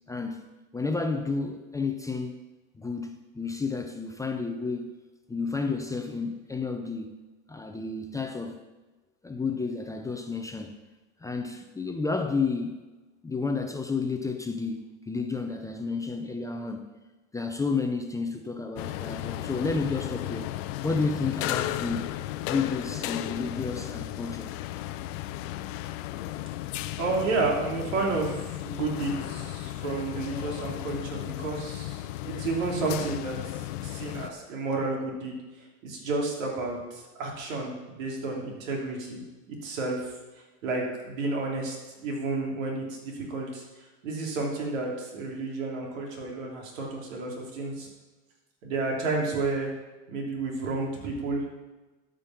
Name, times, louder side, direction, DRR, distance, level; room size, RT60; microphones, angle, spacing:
voice 1, 0.1-0.4 0.7-2.4 2.7-4.9 5.3-7.1 7.5-8.6 9.2-10.8 11.2-12.8 13.2-16.9 17.3-20.5 20.8-22.1 22.4-24.5, left 4 dB, 10° left, 0.6 m, -31 dB
sound 1, 18.8-34.3, left 15 dB, 75° left, 0.7 m, -35 dB
voice 2, 27.0-33.4 33.8-35.4 35.8-40.0 40.6-47.9 48.6-49.7 50.1-51.4, right 3 dB, 80° right, 3.2 m, -31 dB
13.0 x 5.3 x 5.9 m
supercardioid pair, 125°, 38 cm